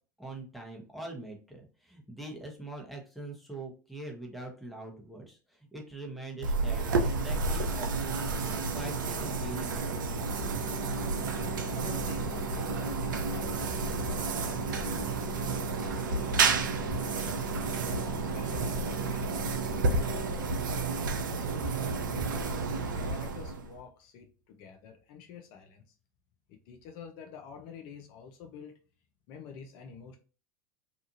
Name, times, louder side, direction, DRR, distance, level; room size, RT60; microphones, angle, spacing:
voice 1, 0.2-10.3, right 2 dB, ahead, 1 dB, 0.9 m, -43 dB
sound 1, 6.4-23.8, right 4 dB, 80° right, 0.4 m, -31 dB
sound 2, 10.3-20.3, equal, 25° right, 0.5 m, -44 dB
voice 2, 11.2-13.6 13.9-17.4 17.9-19.4 19.8-22.6 22.9-25.9 26.5-28.8 29.3-30.2, left 6 dB, 55° left, 4 dB, 0.5 m, -49 dB
2.8 x 2.4 x 2.5 m, 0.36 s
hypercardioid pair, 80°, 11 cm